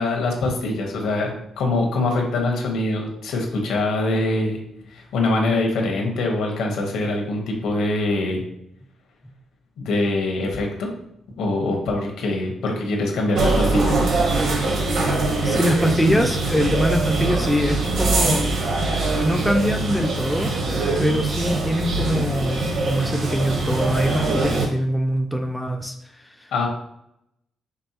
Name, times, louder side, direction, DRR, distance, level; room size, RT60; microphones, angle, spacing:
voice 1, 0.0-4.6 4.9-8.4 9.8-10.9 11.4-14.0 26.5-26.7, left 2 dB, 80° left, 1 dB, 1.1 m, -23 dB
sound 1, 13.3-24.7, right 2 dB, 55° right, 0.9 m, -23 dB
voice 2, 15.4-18.4 19.2-20.5 21.0-26.7, equal, 5° left, 4 dB, 0.3 m, -23 dB
5.2 x 3.5 x 2.9 m, 0.77 s
cardioid pair, 165°, 0 cm